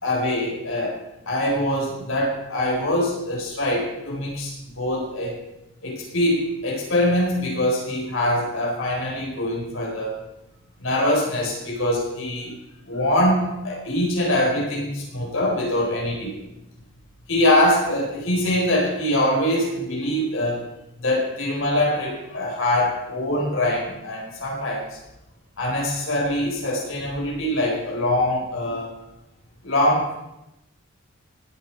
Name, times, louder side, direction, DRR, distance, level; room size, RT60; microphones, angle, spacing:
voice 1, 0.0-5.4 5.8-10.2 10.8-12.5 12.8-16.4 17.3-20.7 21.0-25.0 25.6-28.9 29.6-30.1, left 1 dB, 65° left, -2 dB, 4.4 m, -23 dB
19.5 x 9.4 x 4.7 m, 0.92 s
head